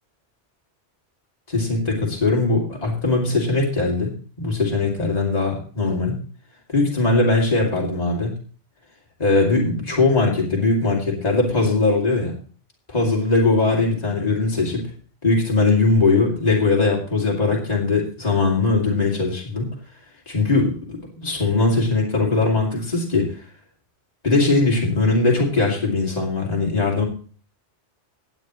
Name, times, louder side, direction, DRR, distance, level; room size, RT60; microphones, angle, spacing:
voice 1, 1.5-4.1 4.4-6.2 6.7-8.3 9.2-12.3 12.9-14.8 15.2-19.6 20.3-20.7 21.2-23.4 24.2-27.0, left 3 dB, 35° left, -2 dB, 2.8 m, -20 dB
18.0 x 9.1 x 3.1 m, 0.42 s
omnidirectional pair, 1.1 m